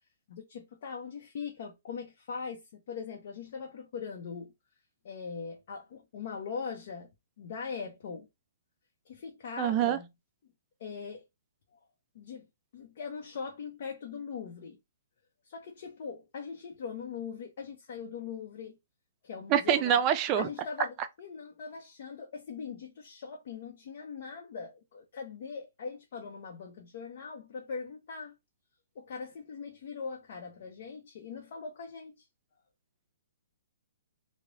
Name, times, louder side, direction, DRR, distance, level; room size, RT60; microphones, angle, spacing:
voice 1, 0.3-4.5 5.0-7.1 7.4-8.3 9.1-10.1 10.8-11.2 12.1-12.5 12.7-14.8 15.4-18.8 19.2-20.0 20.3-28.4 29.0-32.3, left 5 dB, 55° left, 0.6 m, -41 dB
voice 2, 9.6-10.0 19.5-20.5, right 9 dB, 30° right, 0.4 m, -25 dB
3.0 x 2.0 x 2.5 m
hypercardioid pair, 140°, 0 cm